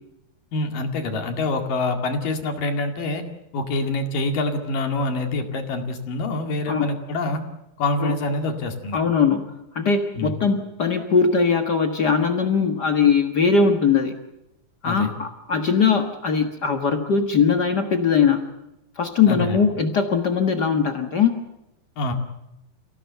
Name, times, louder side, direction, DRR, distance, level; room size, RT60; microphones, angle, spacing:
voice 1, 0.5-3.2 3.5-7.4 7.8-9.0 10.2-10.4 14.8-15.1 19.3-19.7 22.0-22.1, left 2 dB, 60° left, 5 dB, 3.7 m, -26 dB
voice 2, 8.9-9.5 9.7-14.2 14.8-18.4 19.0-21.4, left 5 dB, 75° left, 6 dB, 0.9 m, -20 dB
29.5 x 17.5 x 8.0 m, 0.90 s
omnidirectional pair, 4.5 m